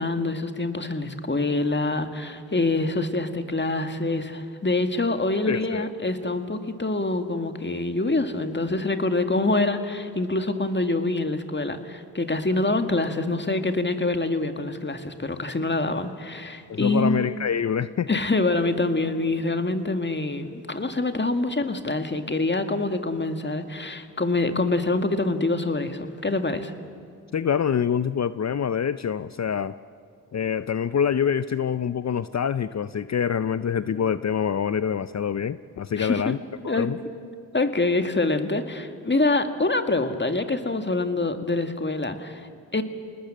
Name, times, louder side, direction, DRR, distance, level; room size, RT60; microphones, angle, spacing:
voice 1, 0.0-17.2 18.1-26.7 36.0-36.3 36.7-36.9 37.5-42.8, left 2 dB, 30° left, 7 dB, 2.0 m, -25 dB
voice 2, 5.5-5.9 16.7-18.1 27.3-29.7 30.3-36.4 36.6-37.0, left 8 dB, 45° left, 14 dB, 0.6 m, -25 dB
27.0 x 19.5 x 7.7 m, 2.3 s
supercardioid pair, 40°, 37 cm